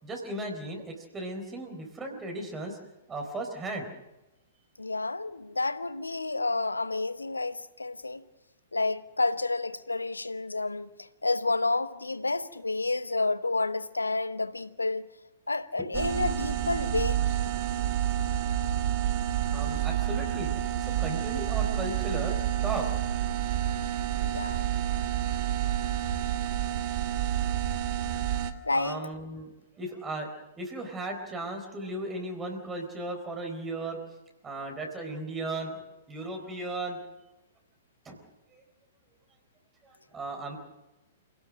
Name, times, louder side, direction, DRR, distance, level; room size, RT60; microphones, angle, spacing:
voice 1, 0.0-2.8 3.1-3.9 15.8-15.9 19.5-22.4 22.6-22.9 28.7-29.5 29.8-30.3 30.6-34.0 34.4-37.0 38.0-38.2 38.5-38.6 39.8-40.6, right 2 dB, 15° right, 4.1 m, -36 dB
voice 2, 4.8-8.2 8.7-15.1 15.5-17.2 24.2-24.7 28.7-29.0, left 3 dB, 80° left, 1.0 m, -30 dB
sound 1, 15.9-28.5, right 11 dB, 40° right, 1.6 m, -29 dB
27.0 x 17.5 x 6.4 m
figure-of-eight pair, 110°, 0 cm